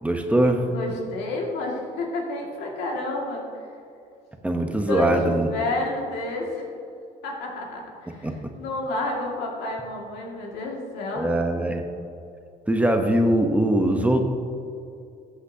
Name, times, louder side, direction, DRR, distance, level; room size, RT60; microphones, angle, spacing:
voice 1, 0.0-0.7 4.4-5.5 8.1-8.5 11.1-11.8 12.7-14.2, right 1 dB, 10° right, 4 dB, 0.8 m, -22 dB
voice 2, 0.7-3.7 4.9-6.6 7.2-8.3 8.6-11.3, left 2 dB, 85° left, -1 dB, 2.1 m, -30 dB
14.5 x 8.1 x 2.8 m, 2.5 s
cardioid pair, 110°, 17 cm